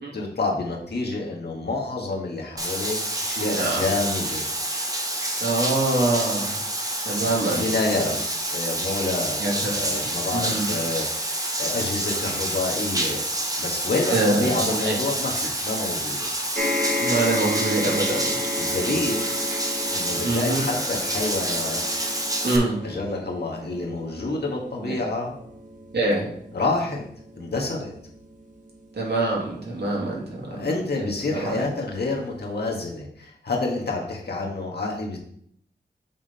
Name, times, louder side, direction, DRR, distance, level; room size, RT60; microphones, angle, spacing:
voice 1, 0.1-4.5 7.2-13.2 13.6-16.3 18.6-19.3 19.9-21.8 22.8-25.3 26.5-27.0 27.4-27.9 30.5-35.2, left 3 dB, 65° left, -1 dB, 1.6 m, -28 dB
Bathtub (filling or washing), 2.6-22.6, right 1 dB, 20° right, 1.1 m, -28 dB
voice 2, 3.4-3.8 5.4-6.5 7.0-7.7 8.0-8.1 9.4-10.0 10.3-10.7 14.1-14.5 14.8-15.0 17.0-18.3 20.2-20.6 22.4-22.8 24.8-25.0 25.9-26.3 28.9-30.2 30.5-30.7 31.3-31.6, right 2 dB, 70° right, -3 dB, 2.1 m, -24 dB
sound 1, 16.5-31.1 31.9-32.0 32.2-32.3, left 2 dB, 45° right, 1.2 m, -33 dB
7.4 x 3.6 x 4.3 m, 0.67 s
wide cardioid pair, 60°, 18 cm